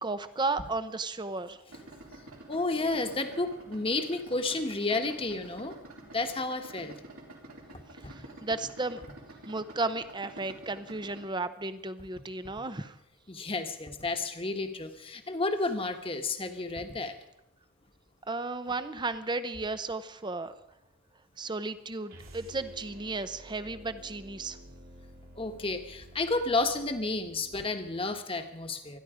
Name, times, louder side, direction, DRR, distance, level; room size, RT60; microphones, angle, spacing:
voice 1, 0.0-1.6 8.1-9.0 9.5-12.9 18.3-20.5 21.4-24.6, right 3 dB, 20° right, 12 dB, 0.7 m, -34 dB
Idling, 1.7-11.3, right 2 dB, 85° right, 3.9 m, -49 dB
voice 2, 2.5-5.8 6.1-6.9 7.7-8.1 13.3-17.2 25.4-29.0, left 3 dB, 25° left, 6 dB, 1.3 m, -31 dB
sound 1, 22.1-28.2, right 1 dB, 70° right, 3.1 m, -51 dB
25.5 x 11.0 x 5.1 m, 0.84 s
head